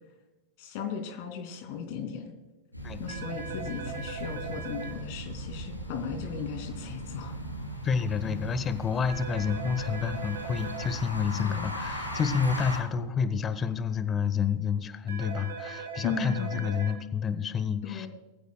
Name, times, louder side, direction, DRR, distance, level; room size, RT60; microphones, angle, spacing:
voice 1, 0.6-2.3 3.0-7.4 11.4-11.8 16.0-16.7 17.8-18.1, left 7 dB, 45° left, 5 dB, 2.7 m, -36 dB
sound 1, 2.7-12.8, equal, 90° left, 2.8 m, -38 dB
sound 2, 3.1-4.9 9.1-10.9 15.1-16.9, right 5 dB, 65° right, 4.0 m, -39 dB
voice 2, 7.8-18.1, left 6 dB, 25° left, 13 dB, 1.0 m, -29 dB
21.5 x 15.0 x 2.3 m, 1.1 s
figure-of-eight pair, 90°, 0 cm